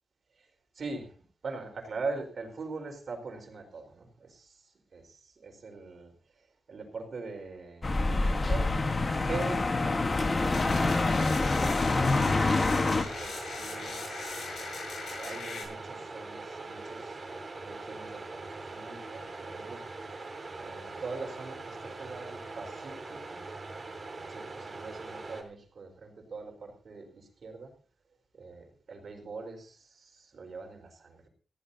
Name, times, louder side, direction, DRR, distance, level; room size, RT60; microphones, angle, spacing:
voice 1, 0.7-1.2 1.4-5.0 5.3-7.9 8.2-9.0 9.3-17.2 17.6-19.9 20.6-23.4 24.1-27.7 28.3-31.3, right 3 dB, 50° right, 4 dB, 4.5 m, -43 dB
sound 1, 7.8-13.0, left 3 dB, 30° left, 1.4 m, -26 dB
sound 2, 10.5-15.6, left 3 dB, 70° left, 7.9 m, -39 dB
sound 3, 12.2-25.4, right 3 dB, 35° right, 3.8 m, -42 dB
20.0 x 16.0 x 2.8 m, 0.36 s
wide cardioid pair, 150°, 0 cm